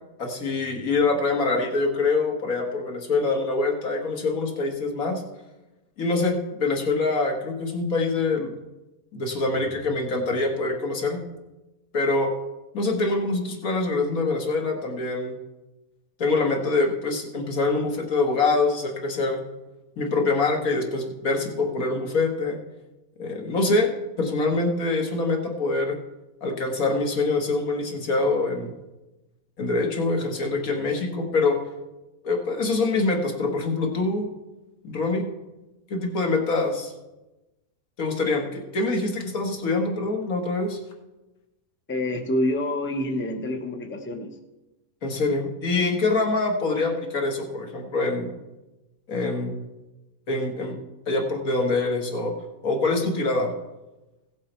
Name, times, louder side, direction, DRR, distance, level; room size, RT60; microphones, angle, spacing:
voice 1, 0.2-5.2 6.0-8.5 9.1-11.2 11.9-12.3 12.7-15.4 16.2-19.4 20.0-22.6 23.2-23.9 24.2-26.0 26.4-28.7 29.6-31.6 32.2-34.3 34.8-35.3 35.9-36.9 38.0-40.8 45.0-48.3 49.1-49.6 50.3-50.8 51.1-52.3 52.6-53.5, left 3 dB, 70° left, 2 dB, 2.0 m, -25 dB
voice 2, 41.9-44.3, left 1 dB, 10° left, 4 dB, 0.6 m, -27 dB
16.0 x 7.4 x 4.4 m, 1.0 s
omnidirectional pair, 1.5 m